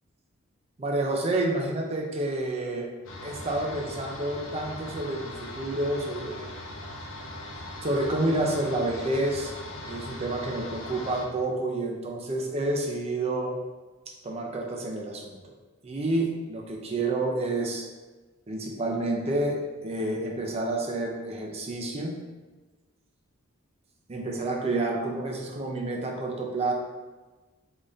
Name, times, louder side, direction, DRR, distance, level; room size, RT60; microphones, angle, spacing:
voice 1, 0.8-2.9 3.2-6.5 7.8-9.5 9.8-13.6 14.2-15.5 15.8-17.9 18.5-22.2 24.1-26.7, right 2 dB, 30° right, 1 dB, 0.5 m, -29 dB
sound 1, 3.0-11.2, left 1 dB, 65° left, 0.7 m, -40 dB
3.9 x 2.5 x 3.2 m, 1.3 s
head